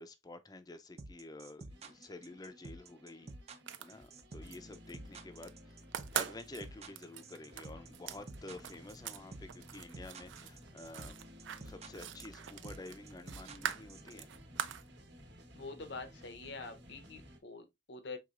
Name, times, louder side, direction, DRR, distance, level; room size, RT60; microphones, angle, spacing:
voice 1, 0.0-3.3 3.8-5.8 6.1-11.2 11.6-14.3, left 2 dB, 20° left, 0.5 m, -50 dB
sound 1, 1.0-14.1, right 2 dB, 35° right, 0.5 m, -49 dB
sound 2, 1.7-17.4, equal, 65° right, 1.2 m, -56 dB
sound 3, 3.5-4.6 4.9-5.5 5.8-9.2 9.5-14.9, right 9 dB, 85° right, 0.4 m, -42 dB
voice 2, 15.5-18.2, left 3 dB, 65° left, 0.8 m, -46 dB
4.8 x 3.7 x 2.4 m
head